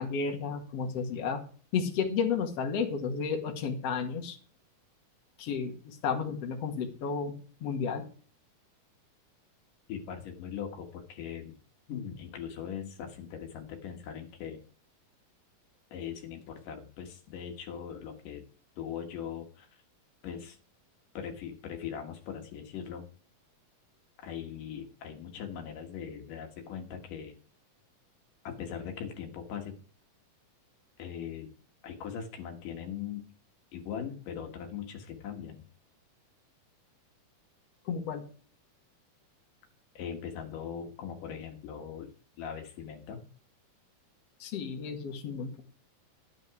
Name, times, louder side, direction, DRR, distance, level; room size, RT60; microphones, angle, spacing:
voice 1, 0.0-1.4 1.7-4.4 5.4-7.4 7.6-8.1 37.9-38.2 44.4-45.6, left 6 dB, 55° left, 3 dB, 2.6 m, -32 dB
voice 2, 9.9-11.6 11.9-14.6 15.9-18.5 18.8-19.8 20.2-20.6 21.1-23.0 24.2-27.4 28.4-29.7 31.0-31.5 31.8-33.3 33.7-35.6 39.9-42.1 42.4-43.2, left 8 dB, 75° left, 4 dB, 3.1 m, -40 dB
12.0 x 9.4 x 4.8 m, 0.43 s
omnidirectional pair, 3.8 m